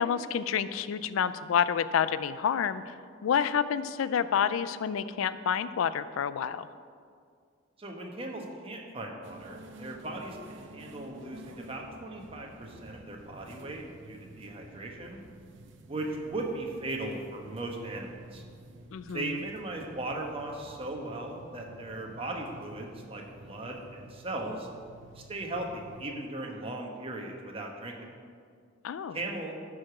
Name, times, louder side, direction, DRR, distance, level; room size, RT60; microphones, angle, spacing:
voice 1, 0.0-3.0 3.2-6.7 18.9-19.4 28.8-29.2, left 7 dB, 90° left, 14 dB, 0.3 m, -28 dB
voice 2, 7.8-15.2 15.9-18.4 19.1-24.7 25.1-28.1 29.1-29.5, right 2 dB, 30° right, 0 dB, 1.2 m, -38 dB
sound 1, 9.2-26.0, right 1 dB, 65° right, 0.7 m, -51 dB
12.0 x 4.9 x 6.0 m, 2.2 s
head